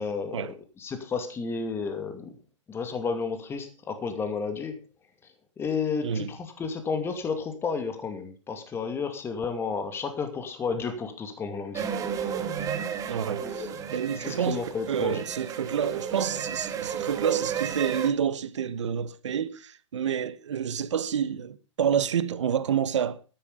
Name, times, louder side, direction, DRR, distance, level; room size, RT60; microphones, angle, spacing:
voice 1, 0.0-2.3 2.7-4.8 5.6-11.9 12.2-12.3 12.6-12.9 13.4-13.7 14.2-15.2, left 5 dB, 15° left, 2.4 m, -32 dB
sound 1, 11.7-18.1, right 8 dB, 20° right, 1.9 m, -33 dB
voice 2, 13.1-14.6 14.9-23.2, right 8 dB, 70° right, 1.4 m, -28 dB
13.0 x 11.0 x 5.2 m
hypercardioid pair, 130°, 16 cm